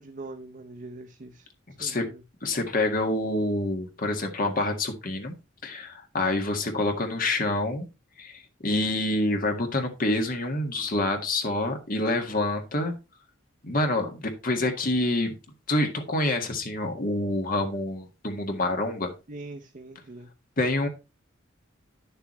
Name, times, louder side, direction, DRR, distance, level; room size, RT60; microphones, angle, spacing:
voice 1, 0.0-1.5 1.8-2.2 19.3-20.3, right 2 dB, 40° right, 0.8 m, -42 dB
voice 2, 2.4-5.3 5.6-7.9 8.2-12.9 13.6-15.3 15.7-19.1 20.6-20.9, left 2 dB, 45° left, 1.8 m, -27 dB
11.5 x 6.9 x 3.1 m
head